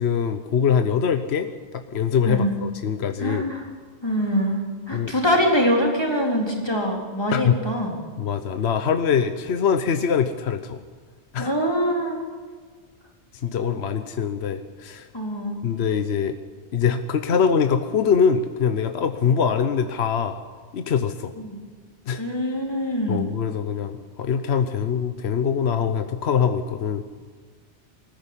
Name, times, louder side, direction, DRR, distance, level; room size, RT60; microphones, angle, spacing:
voice 1, 0.0-1.5 1.7-3.5 4.9-5.1 7.3-7.6 8.2-10.8 11.3-11.5 13.3-15.1 15.6-16.3 16.7-20.4 20.7-21.3 22.1-22.2 23.1-27.0, left 7 dB, 65° left, 8 dB, 1.1 m, -23 dB
voice 2, 2.3-2.6 3.2-3.7 4.0-8.0 11.4-12.2 15.1-15.6 21.4-21.6 22.2-23.3, equal, 20° left, -1 dB, 3.8 m, -24 dB
20.0 x 14.5 x 9.8 m, 1.5 s
omnidirectional pair, 1.2 m